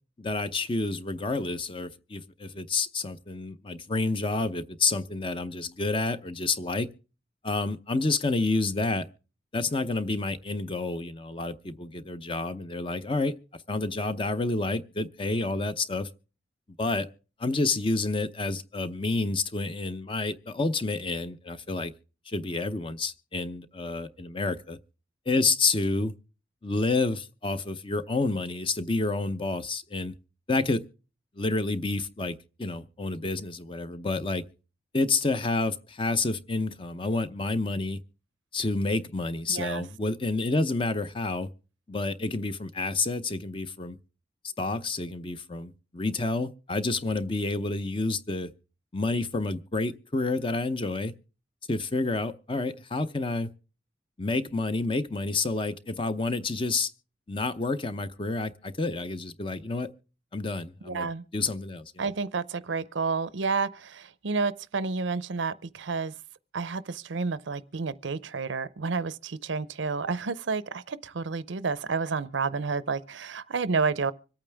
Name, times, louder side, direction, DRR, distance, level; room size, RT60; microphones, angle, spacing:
voice 1, 0.2-6.9 7.4-9.1 9.5-13.3 13.7-16.1 16.8-17.1 17.4-21.9 22.3-24.8 25.3-26.1 26.6-30.1 30.5-30.8 31.4-34.4 34.9-38.0 38.5-41.5 41.9-44.0 44.6-48.5 48.9-51.1 51.7-53.5 54.2-56.9 57.3-59.9 60.3-62.0, left 3 dB, 30° left, 0.7 m, -29 dB
voice 2, 39.5-39.8 60.8-61.2 62.0-66.1 66.5-74.1, right 4 dB, 80° right, 0.6 m, -30 dB
25.5 x 8.8 x 3.4 m
head